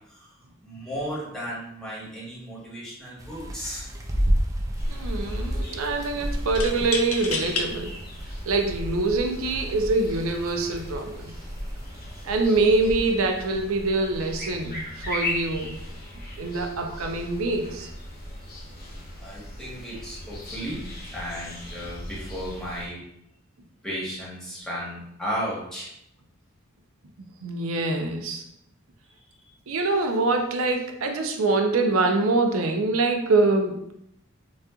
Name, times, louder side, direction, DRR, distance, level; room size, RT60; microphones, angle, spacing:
voice 1, 0.6-3.9 19.2-20.8 21.1-23.0 23.8-25.9, equal, 5° left, -7 dB, 1.1 m, -34 dB
sound 1, 3.2-13.1, equal, 15° right, 0.3 m, -32 dB
sound 2, 3.4-3.6 4.0-4.6 6.5-7.7 8.4-8.5 9.4-9.7, left 4 dB, 80° left, 0.5 m, -31 dB
sound 3, 4.8-22.9, left 1 dB, 50° left, 0.8 m, -37 dB
voice 2, 4.9-8.0 8.5-11.3 12.2-15.8 16.4-17.9 27.4-28.4 29.7-33.9, right 3 dB, 75° right, 4 dB, 0.5 m, -24 dB
4.0 x 2.4 x 2.3 m, 0.76 s
head